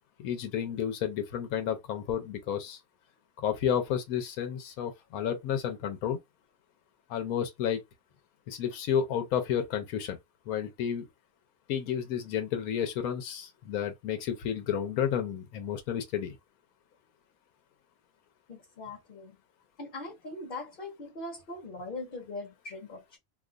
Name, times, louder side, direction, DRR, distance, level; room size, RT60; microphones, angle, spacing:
voice 1, 0.2-2.8 3.4-6.2 7.1-7.8 8.5-10.2 10.5-11.0 11.7-16.4, left 8 dB, 85° left, 1.1 m, -31 dB
voice 2, 18.5-19.4 19.8-23.2, left 2 dB, 45° left, 0.9 m, -41 dB
2.6 x 2.3 x 3.7 m
omnidirectional pair, 1.5 m